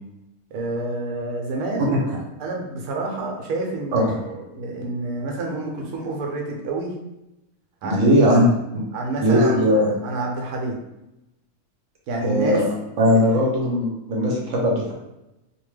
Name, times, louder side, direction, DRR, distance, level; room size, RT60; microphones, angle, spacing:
voice 1, 0.5-6.9 7.8-8.2 8.9-9.6 10.0-10.8 12.1-12.6, right 2 dB, 85° right, 1 dB, 1.1 m, -28 dB
voice 2, 3.9-4.4 7.8-8.5 9.2-9.9 12.2-14.9, equal, 60° right, -2 dB, 1.0 m, -19 dB
2.8 x 2.2 x 3.1 m, 0.91 s
omnidirectional pair, 1.6 m